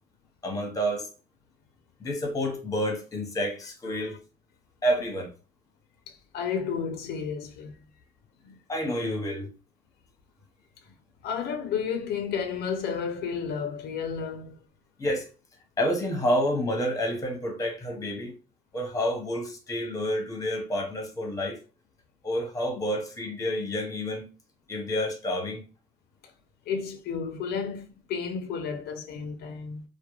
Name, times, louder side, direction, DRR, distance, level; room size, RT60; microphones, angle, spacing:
voice 1, 0.4-1.1 2.0-4.2 4.8-5.3 8.7-9.5 15.0-15.3 15.8-18.3 18.7-21.6 22.2-24.3 24.7-25.7, equal, 20° left, 0.9 m, -29 dB
voice 2, 6.1-7.7 8.4-8.6 11.2-14.6 26.7-29.8, left 6 dB, 70° left, 0.4 m, -32 dB
2.3 x 2.1 x 3.0 m
cardioid pair, 110°, 17 cm